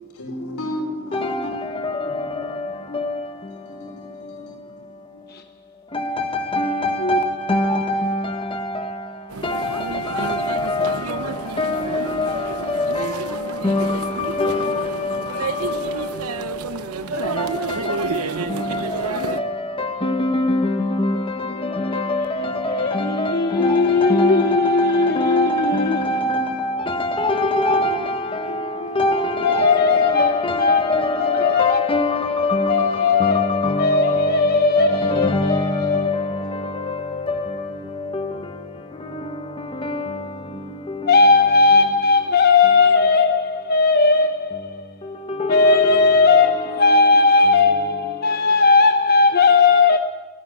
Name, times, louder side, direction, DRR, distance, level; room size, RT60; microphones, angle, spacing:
voice 1, 0.0-1.5 2.1-2.5 2.9-3.0 3.7-4.1 4.4-4.5 28.5-29.0 30.5-30.6 36.4-36.8 40.4-40.8, left 1 dB, 90° left, 5.1 m, -34 dB
voice 2, 1.1-41.9 42.3-43.1 44.5-48.7, left 2 dB, 25° left, 1.4 m, -25 dB
sound 1, 9.3-19.4, right 4 dB, 90° right, 1.0 m, -30 dB
voice 3, 21.6-22.1 22.7-26.0 29.4-32.0 32.7-36.1 41.1-44.9 45.5-50.0, left 4 dB, 45° left, 1.0 m, -17 dB
19.0 x 17.0 x 10.0 m
head